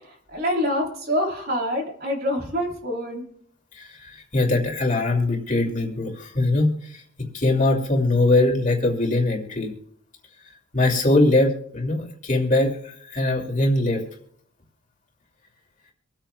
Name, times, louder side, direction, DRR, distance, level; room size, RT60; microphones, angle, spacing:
voice 1, 0.3-3.2, equal, 45° right, 1 dB, 3.4 m, -25 dB
voice 2, 3.7-9.7 10.7-14.0, left 2 dB, 35° left, 1 dB, 2.6 m, -22 dB
25.5 x 8.9 x 2.3 m, 0.67 s
head